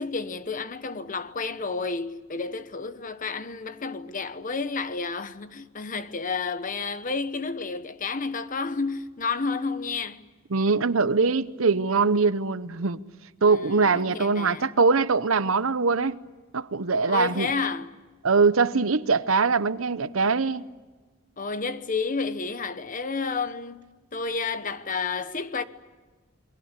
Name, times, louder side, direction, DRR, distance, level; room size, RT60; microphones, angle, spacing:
voice 1, 0.0-10.3 13.4-14.7 17.1-17.9 21.4-23.9 24.1-25.6, left 4 dB, 40° left, 1.1 m, -31 dB
voice 2, 10.5-13.0 13.4-16.2 16.5-17.5 18.2-20.6, right 4 dB, 80° right, 0.9 m, -22 dB
28.5 x 22.5 x 8.3 m
head